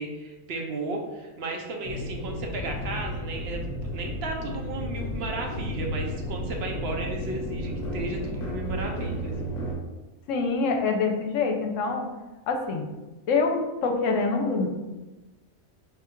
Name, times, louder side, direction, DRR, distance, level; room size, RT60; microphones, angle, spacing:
voice 1, 0.0-3.6 3.9-9.3, right 2 dB, 60° right, 2 dB, 0.8 m, -34 dB
sound 1, 1.8-9.7, equal, 35° left, 0.9 m, -33 dB
voice 2, 10.3-12.1 12.5-12.9 13.3-14.7, left 4 dB, 70° left, 3 dB, 0.9 m, -25 dB
3.6 x 2.4 x 4.3 m, 1.1 s
omnidirectional pair, 1.4 m